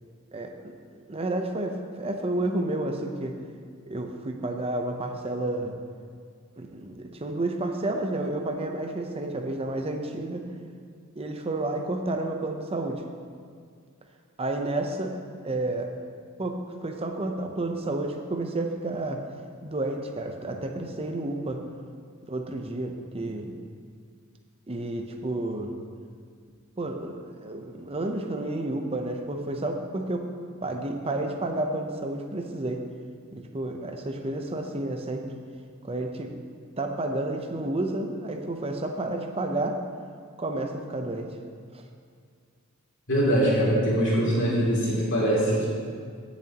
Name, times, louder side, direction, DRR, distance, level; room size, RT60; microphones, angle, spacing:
voice 1, 0.3-3.4 3.9-5.7 6.6-10.5 11.2-13.0 14.4-15.1 15.4-15.9 16.4-19.2 19.6-21.6 22.3-23.5 24.7-25.7 26.8-30.2 30.6-32.8 33.3-35.3 35.8-36.3 36.8-39.8 40.4-41.3 41.7-41.8, right 2 dB, 25° right, 4 dB, 0.7 m, -31 dB
voice 2, 43.1-45.7, equal, 55° left, -6 dB, 2.7 m, -23 dB
16.0 x 7.3 x 2.9 m, 2.1 s
head